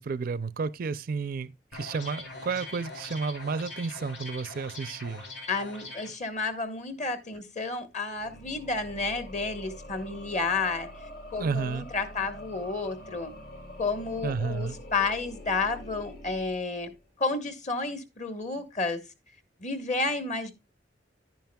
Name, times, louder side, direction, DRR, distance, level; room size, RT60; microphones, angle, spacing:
voice 1, 0.0-5.2 11.4-11.9 14.2-14.8, right 4 dB, 55° right, 0.4 m, -31 dB
sound 1, 1.7-6.1, left 2 dB, 85° left, 2.9 m, -42 dB
voice 2, 5.5-10.9 11.3-13.3 13.8-16.9 17.2-19.0 19.6-20.5, left 3 dB, 45° left, 1.2 m, -31 dB
sound 2, 8.1-17.2, left 1 dB, 60° left, 1.7 m, -45 dB
10.5 x 9.2 x 2.3 m
head